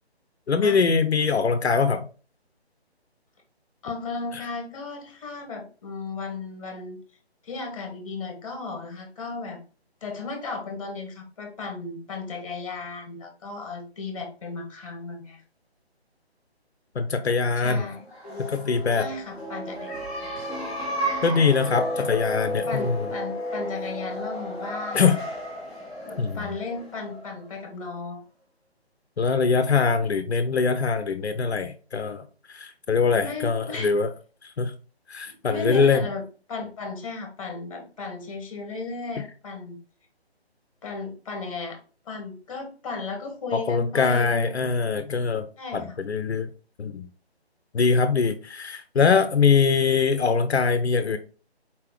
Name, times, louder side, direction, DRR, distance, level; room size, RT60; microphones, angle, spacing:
voice 1, 0.5-2.1 16.9-17.9 18.5-19.1 21.2-23.1 24.9-25.2 26.2-26.5 29.2-32.2 32.5-34.1 34.4-34.7 35.1-36.0 43.5-45.5 45.7-46.5 46.8-47.1 47.7-51.2, left 5 dB, 75° left, 0.6 m, -23 dB
voice 2, 3.8-7.0 7.4-9.6 10.0-15.4 17.6-18.0 18.9-20.0 22.0-22.1 22.7-25.1 26.0-28.2 33.2-33.9 35.4-36.2 36.5-39.8 40.8-41.8 42.1-44.7 45.6-46.0, left 4 dB, 30° left, 1.2 m, -35 dB
sound 1, 18.0-27.5, equal, 5° right, 0.8 m, -32 dB
4.3 x 3.7 x 3.1 m
figure-of-eight pair, 155°, 32 cm